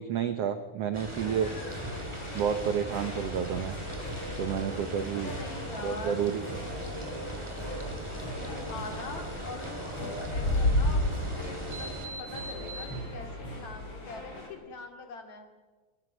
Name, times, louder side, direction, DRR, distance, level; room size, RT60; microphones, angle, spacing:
voice 1, 0.0-1.5 2.3-3.8 4.4-5.3 5.8-6.5, right 8 dB, 80° right, 9 dB, 1.4 m, -30 dB
sound 1, 0.9-12.1, right 1 dB, 10° right, 3.0 m, -39 dB
sound 2, 1.1-14.5, left 1 dB, 35° left, 7.1 m, -35 dB
sound 3, 4.6-13.3, right 2 dB, 50° right, 4.6 m, -49 dB
voice 2, 5.1-6.2 6.8-7.2 8.4-15.5, left 3 dB, 50° left, 5 dB, 3.7 m, -43 dB
25.0 x 23.0 x 6.2 m, 1.4 s
omnidirectional pair, 4.2 m